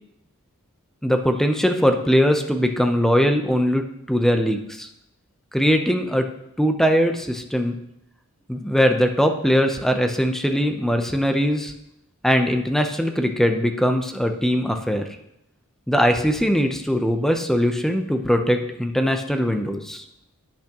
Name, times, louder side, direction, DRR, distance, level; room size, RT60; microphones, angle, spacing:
voice 1, 1.0-4.9 5.5-6.3 6.6-7.8 8.5-11.7 12.2-15.1 15.9-20.0, equal, ahead, 5 dB, 0.7 m, -21 dB
17.0 x 6.0 x 3.0 m, 0.82 s
head